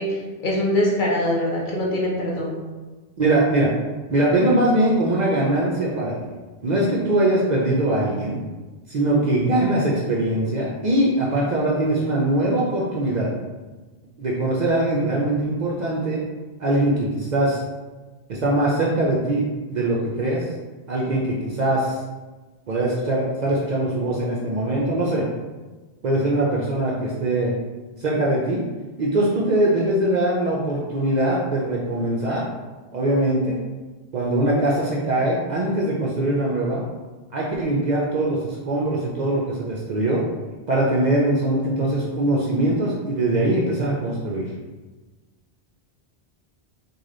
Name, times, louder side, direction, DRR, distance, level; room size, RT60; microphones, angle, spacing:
voice 1, 0.0-2.6, left 1 dB, 55° left, -3 dB, 0.7 m, -23 dB
voice 2, 3.2-3.7 4.1-6.3 6.6-8.4 8.9-13.3 14.2-16.2 16.6-17.6 18.3-19.4 19.7-20.5 20.9-21.9 22.7-25.3 26.0-27.5 28.0-28.6 29.0-32.4 32.9-33.6 34.1-36.8 37.3-40.2 40.7-44.5, right 1 dB, 55° right, -4 dB, 0.5 m, -22 dB
3.2 x 2.3 x 3.7 m, 1.2 s
omnidirectional pair, 1.1 m